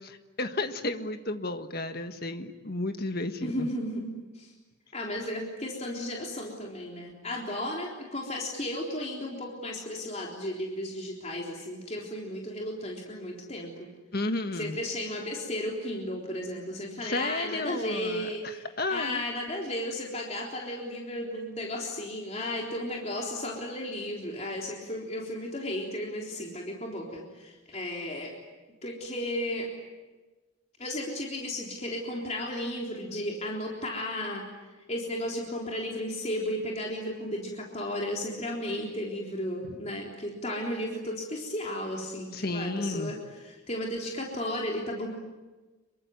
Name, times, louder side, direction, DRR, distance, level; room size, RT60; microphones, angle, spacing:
voice 1, 0.0-3.7 14.1-14.8 17.0-19.2 39.7-39.8 42.3-43.1, left 2 dB, 45° left, 8 dB, 1.6 m, -33 dB
voice 2, 3.4-4.1 4.4-4.5 4.9-13.9 14.6-28.3 28.8-29.7 30.8-34.4 34.9-45.1, left 1 dB, 30° left, -1 dB, 3.7 m, -34 dB
26.5 x 23.5 x 9.4 m, 1.2 s
head